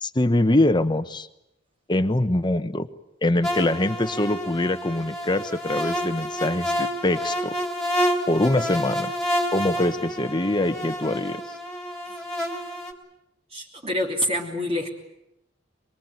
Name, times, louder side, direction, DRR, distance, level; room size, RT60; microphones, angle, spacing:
voice 1, 0.0-1.3 1.9-2.9 3.2-7.6 8.3-9.1 9.5-11.4, left 1 dB, 25° left, 11 dB, 1.1 m, -23 dB
sound 1, 3.4-12.9, equal, 5° left, 3.2 m, -29 dB
voice 2, 13.5-14.9, left 1 dB, 30° right, -2 dB, 3.3 m, -26 dB
23.5 x 23.5 x 9.5 m, 0.86 s
head